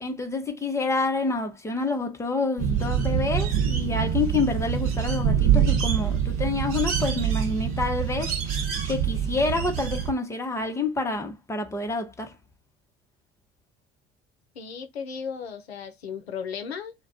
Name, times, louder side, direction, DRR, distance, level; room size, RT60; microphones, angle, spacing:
voice 1, 0.0-8.6 8.9-12.3, left 3 dB, 10° left, 0.7 m, -28 dB
sound 1, 2.6-10.1, right 8 dB, 45° right, 0.9 m, -25 dB
voice 2, 14.5-16.9, left 6 dB, 80° left, 0.6 m, -35 dB
2.3 x 2.2 x 3.6 m
figure-of-eight pair, 60°, 31 cm